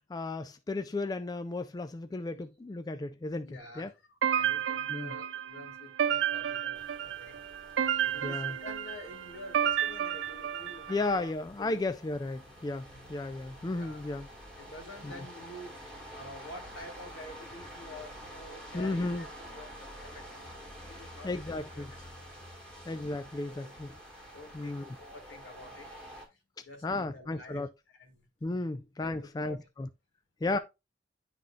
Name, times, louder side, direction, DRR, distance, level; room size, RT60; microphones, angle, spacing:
voice 1, 0.1-3.9 4.9-5.1 8.2-8.6 10.9-14.3 15.0-15.1 18.7-19.2 21.2-21.9 22.9-23.9 24.5-25.0 26.8-27.7 28.4-29.9 30.4-30.6, left 2 dB, 20° left, 0.3 m, -34 dB
voice 2, 3.4-7.4 8.0-11.9 13.7-14.0 14.6-15.8 16.1-20.5 20.9-21.9 23.4-23.7 24.3-26.0 26.3-28.3 29.0-29.6 30.4-30.6, left 2 dB, 85° left, 2.2 m, -49 dB
sound 1, 4.2-11.1, right 9 dB, 80° right, 0.5 m, -31 dB
sound 2, 6.7-26.3, equal, 5° left, 1.9 m, -49 dB
10.5 x 3.9 x 2.4 m
head